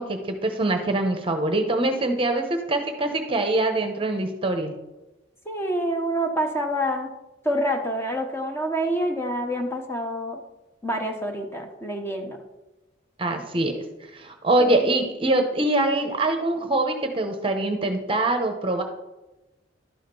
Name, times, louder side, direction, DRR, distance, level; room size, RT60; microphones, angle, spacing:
voice 1, 0.0-4.7 13.2-13.8 14.1-18.8, right 2 dB, 30° right, 6 dB, 0.9 m, -24 dB
voice 2, 5.5-7.1 7.4-10.4 10.8-12.4 14.6-14.8, equal, 15° left, 3 dB, 1.0 m, -27 dB
11.5 x 5.0 x 5.3 m, 1.0 s
head